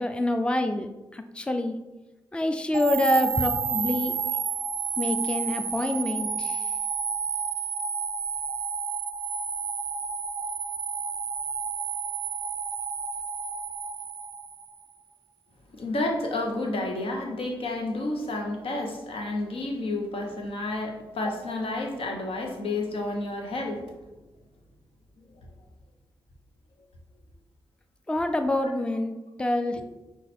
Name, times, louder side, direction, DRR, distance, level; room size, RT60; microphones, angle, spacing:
voice 1, 0.0-1.8 2.3-4.1 5.0-6.7 28.1-29.8, left 1 dB, 10° left, 7 dB, 0.4 m, -26 dB
sound 1, 2.7-14.9, right 6 dB, 80° right, 0.4 m, -31 dB
voice 2, 15.7-23.8 25.4-25.5 28.6-28.7, left 2 dB, 80° left, 2 dB, 0.9 m, -30 dB
5.3 x 2.4 x 4.1 m, 1.1 s
cardioid pair, 50°, 9 cm